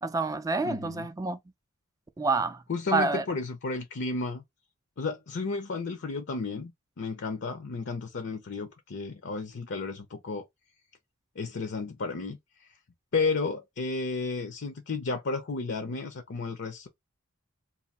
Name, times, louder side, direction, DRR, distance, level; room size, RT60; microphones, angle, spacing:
voice 1, 0.0-1.4 2.2-2.6 2.9-3.2, right 3 dB, 15° right, 0.3 m, -28 dB
voice 2, 0.6-1.1 2.7-4.4 5.0-6.7 7.0-10.4 11.4-12.7 13.1-16.9, left 4 dB, 55° left, 0.6 m, -32 dB
2.6 x 2.6 x 4.1 m
head